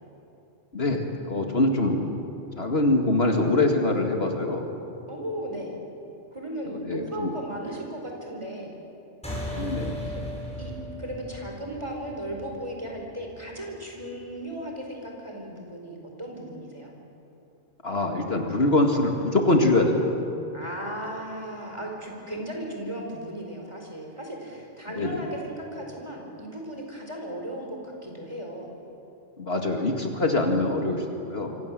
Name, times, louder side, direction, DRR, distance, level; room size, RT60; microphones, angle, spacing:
voice 1, 0.7-2.1 2.6-4.6 6.7-7.3 9.6-10.0 17.8-20.1 25.0-25.3 29.4-31.6, left 2 dB, 55° left, 3 dB, 2.3 m, -24 dB
voice 2, 5.1-5.8 6.3-8.7 10.0-10.2 10.6-10.7 11.0-16.9 20.5-28.7, right 1 dB, 25° right, 0 dB, 4.7 m, -36 dB
sound 1, 9.2-14.1, left 1 dB, 5° left, 7.3 m, -37 dB
27.0 x 25.0 x 7.6 m, 2.9 s
omnidirectional pair, 1.3 m